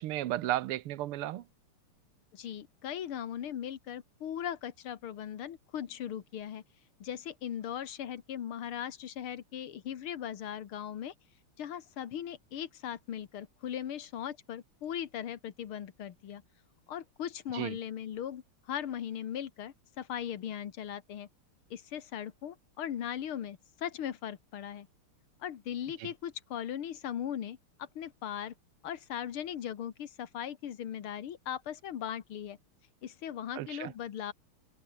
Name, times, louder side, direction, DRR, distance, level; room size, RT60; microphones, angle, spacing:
voice 1, 0.0-1.4 17.5-17.8 26.0-26.1 33.5-33.9, right 14 dB, 85° right, 1.8 m, -34 dB
voice 2, 2.3-6.6 7.0-11.1 11.6-16.4 16.9-21.3 21.7-24.9 25.4-28.5 28.8-32.6 33.0-34.3, left 9 dB, 75° left, 2.3 m, -39 dB
omnidirectional pair, 2.4 m